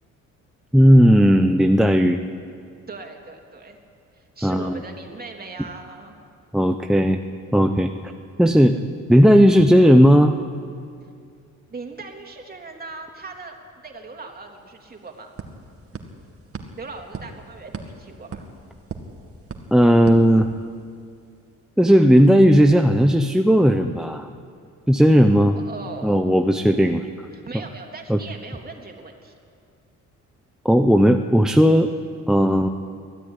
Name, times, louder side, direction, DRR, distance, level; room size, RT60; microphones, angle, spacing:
voice 1, 0.7-2.2 4.4-4.8 6.5-7.2 7.5-7.9 8.4-10.4 19.7-20.5 21.8-24.3 24.9-25.6 26.0-27.1 28.1-28.2 30.6-31.9 32.3-32.7, equal, ahead, 5 dB, 0.9 m, -15 dB
voice 2, 2.9-3.8 4.1-6.2 11.7-15.3 16.8-18.5 25.6-26.2 27.3-29.4, right 3 dB, 30° right, 2 dB, 3.3 m, -39 dB
sound 1, 14.3-14.4 14.6-21.0, right 4 dB, 50° right, 2.2 m, -39 dB
23.5 x 13.5 x 9.8 m, 2.3 s
cardioid pair, 90°, 30 cm